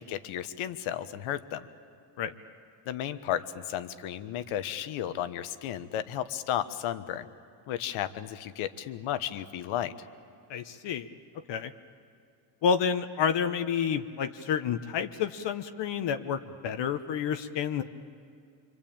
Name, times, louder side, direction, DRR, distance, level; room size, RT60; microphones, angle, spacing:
voice 1, 0.0-1.7 2.8-7.3 7.7-9.9, left 11 dB, 75° left, 11 dB, 1.4 m, -33 dB
voice 2, 10.5-11.1 11.5-11.7 12.6-17.8, left 7 dB, 60° left, 8 dB, 1.2 m, -29 dB
25.5 x 25.0 x 8.9 m, 2.5 s
cardioid pair, 100°, 49 cm